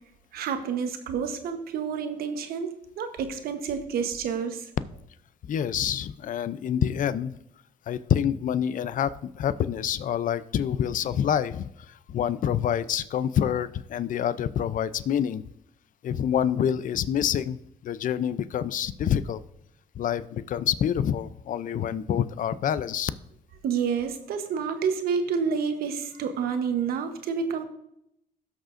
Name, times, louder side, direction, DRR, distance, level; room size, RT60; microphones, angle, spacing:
voice 1, 0.3-4.7 23.6-27.6, right 6 dB, 75° right, 7 dB, 1.1 m, -29 dB
voice 2, 5.4-7.3 7.9-15.4 16.0-19.4 20.0-23.1, left 9 dB, 60° left, 15 dB, 0.5 m, -27 dB
17.0 x 6.4 x 2.6 m, 0.79 s
supercardioid pair, 70°, 16 cm